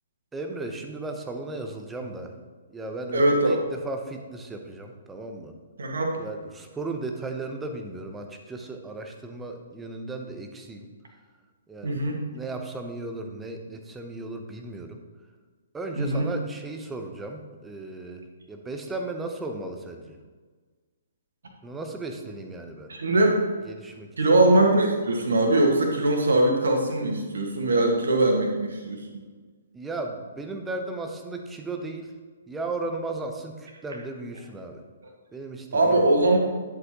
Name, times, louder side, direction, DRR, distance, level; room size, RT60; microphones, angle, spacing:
voice 1, 0.3-2.4 2.7-5.5 6.2-10.9 11.7-12.0 12.3-15.0 15.7-20.2 21.6-22.9 23.7-24.1 29.7-32.2 32.5-34.8 35.3-36.2, right 2 dB, 10° right, 4 dB, 0.8 m, -35 dB
voice 2, 3.1-3.6 5.8-6.2 11.8-12.2 16.0-16.3 22.9-23.4 24.2-29.1 35.7-36.4, right 2 dB, 60° right, 1 dB, 1.8 m, -21 dB
11.0 x 7.7 x 3.0 m, 1.4 s
figure-of-eight pair, 125°, 0 cm